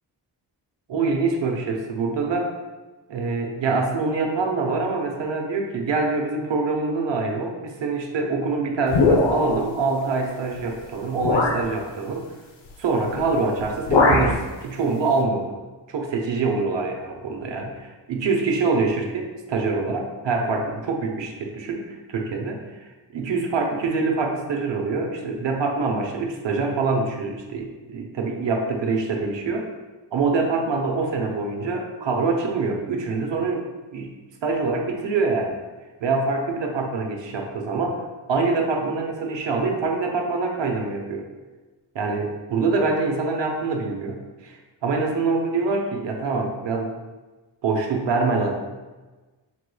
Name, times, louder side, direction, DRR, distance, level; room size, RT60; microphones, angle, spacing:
voice 1, 0.9-2.5 3.1-12.3 12.8-15.5 15.9-22.6 23.1-29.7 30.1-33.7 33.9-34.1 34.4-35.5 36.0-38.0 38.3-41.3 41.9-46.9 47.6-48.6, right 3 dB, 75° right, 2 dB, 0.8 m, -25 dB
sound 1, 8.9-9.7 10.6-10.7 11.2-11.7 13.1-13.3 13.6-14.4, left 3 dB, 85° left, 0.7 m, -20 dB
5.9 x 3.1 x 2.2 m, 1.2 s
cardioid pair, 80°, 45 cm